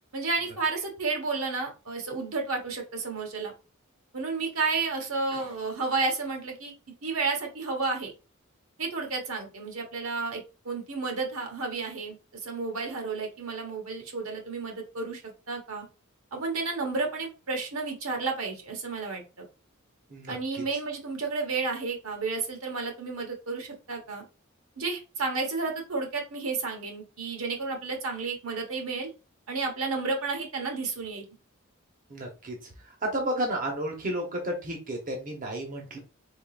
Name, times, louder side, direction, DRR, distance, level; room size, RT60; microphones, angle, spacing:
voice 1, 0.1-3.5 4.1-6.7 7.0-8.1 8.8-15.9 16.3-19.2 20.3-24.2 24.8-29.1 29.5-31.3, right 4 dB, 75° right, 2 dB, 1.1 m, -31 dB
voice 2, 20.1-20.6 32.1-36.0, right 1 dB, 40° right, 1 dB, 0.9 m, -32 dB
3.7 x 3.7 x 2.4 m, 0.32 s
head